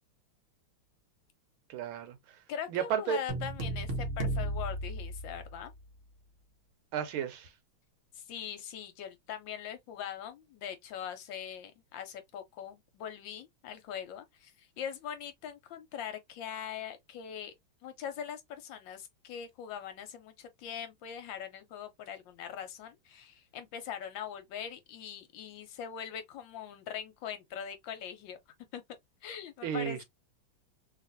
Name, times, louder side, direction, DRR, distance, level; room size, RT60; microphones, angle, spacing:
voice 1, 1.7-2.2 2.7-3.2 6.9-7.5 29.6-30.0, right 8 dB, 80° right, 1.5 m, -32 dB
voice 2, 2.5-5.7 8.1-17.5 17.8-28.4 28.7-28.8 29.2-30.0, left 8 dB, 75° left, 1.2 m, -42 dB
sound 1, 3.3-5.8, right 1 dB, 60° right, 0.8 m, -34 dB
3.4 x 2.4 x 2.5 m
omnidirectional pair, 2.3 m